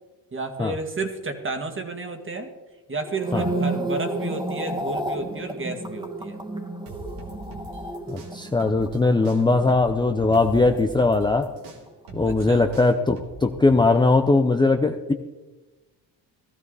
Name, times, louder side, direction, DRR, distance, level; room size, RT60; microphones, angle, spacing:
voice 1, 0.3-2.5 2.9-6.4 12.2-12.7, right 3 dB, 30° right, 6 dB, 2.1 m, -31 dB
sound 1, 3.0-11.4 11.7-12.1, right 2 dB, 10° right, 1.8 m, -32 dB
sound 2, 6.9-9.0 9.2-13.8, right 2 dB, 85° right, 2.5 m, -41 dB
voice 2, 8.1-11.5 12.1-15.1, left 3 dB, 10° left, 6 dB, 0.6 m, -20 dB
16.0 x 13.5 x 4.1 m, 1.2 s
cardioid pair, 90°, 41 cm